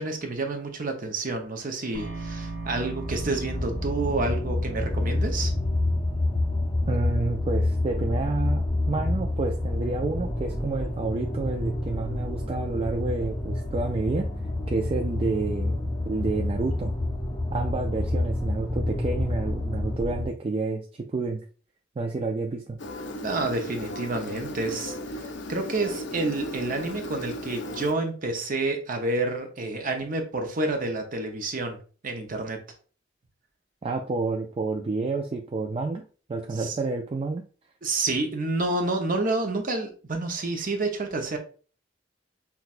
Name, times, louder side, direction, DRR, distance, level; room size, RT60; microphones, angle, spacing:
voice 1, 0.0-5.5 23.2-31.8 32.0-32.6 36.6-36.8 37.8-41.4, right 2 dB, 45° right, 4 dB, 0.7 m, -29 dB
sound 1, 1.9-8.0, right 3 dB, 75° right, 1.2 m, -39 dB
sound 2, 3.0-20.3, left 2 dB, 15° left, 0.6 m, -28 dB
voice 2, 6.9-14.3 14.7-16.9 17.5-21.4 22.0-22.8 33.8-37.4, right 3 dB, 30° right, 2 dB, 0.3 m, -29 dB
Engine, 22.8-27.9, left 1 dB, 70° left, 0.5 m, -36 dB
5.8 x 2.2 x 2.5 m, 0.39 s
head